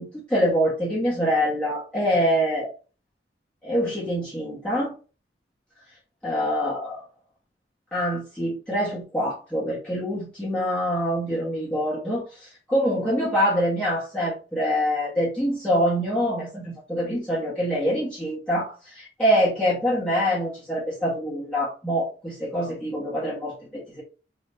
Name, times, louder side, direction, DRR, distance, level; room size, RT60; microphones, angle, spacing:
voice 1, 0.0-2.7 3.6-4.9 6.2-7.0 7.9-23.8, equal, 5° left, -9 dB, 1.6 m, -25 dB
5.8 x 3.0 x 2.8 m, 0.34 s
head